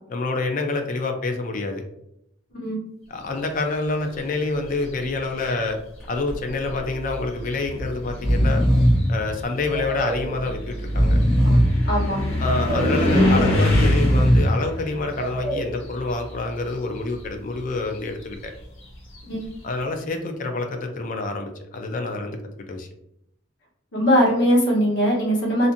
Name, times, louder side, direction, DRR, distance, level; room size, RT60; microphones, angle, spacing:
voice 1, 0.1-1.8 3.1-5.8 6.1-8.6 9.1-11.2 12.4-18.5 19.6-22.4 22.7-22.9, left 3 dB, 40° left, 5 dB, 0.3 m, -27 dB
sound 1, 4.5-5.1 6.1-6.2 6.7-16.6 16.9-19.6, left 1 dB, 90° left, 1.1 m, -26 dB
Breathing, 6.0-6.4 6.7-6.8 7.6-7.8 8.1-9.1 9.7-10.3 10.8-11.8 12.4-13.0 13.6-14.6 15.1-15.8, equal, 5° left, 1.2 m, -20 dB
voice 2, 11.8-12.2 19.3-19.5 23.9-25.7, equal, 65° left, -4 dB, 1.0 m, -20 dB
2.5 x 2.5 x 2.6 m, 0.76 s
head